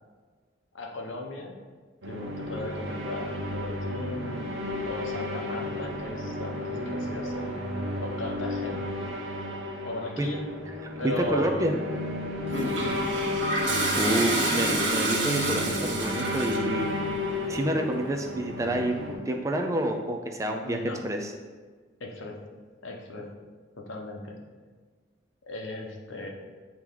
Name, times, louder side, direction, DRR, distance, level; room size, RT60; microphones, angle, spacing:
voice 1, 0.7-1.6 2.1-4.5 4.9-7.5 8.0-8.9 9.8-10.5 11.0-11.7 12.5-13.0 20.6-21.0 22.0-22.4 22.8-23.3 23.8-24.4 25.5-26.3, left 2 dB, 85° left, 1 dB, 1.0 m, -36 dB
sound 1, 2.0-19.1, left 1 dB, 85° right, 1.1 m, -33 dB
voice 2, 11.0-11.7 14.0-17.0 17.5-20.8 21.0-21.3, right 1 dB, 15° right, 3 dB, 0.4 m, -28 dB
Toilet flush, 12.5-16.8, right 2 dB, 70° right, 1.3 m, -28 dB
8.6 x 3.0 x 3.8 m, 1.5 s
head